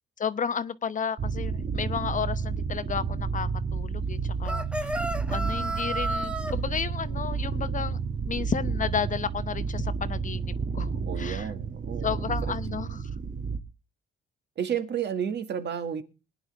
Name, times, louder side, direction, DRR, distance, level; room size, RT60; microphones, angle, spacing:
voice 1, 0.2-4.9 5.3-8.0 8.3-10.9 11.2-11.5 12.0-13.1, left 7 dB, 40° left, 0.8 m, -32 dB
sound 1, 1.2-13.6, right 5 dB, 40° right, 1.1 m, -31 dB
sound 2, 4.4-6.5, right 1 dB, 5° right, 0.9 m, -31 dB
voice 2, 11.1-13.0 14.6-16.0, right 8 dB, 60° right, 1.9 m, -32 dB
20.0 x 10.0 x 3.4 m
cardioid pair, 90°, 20 cm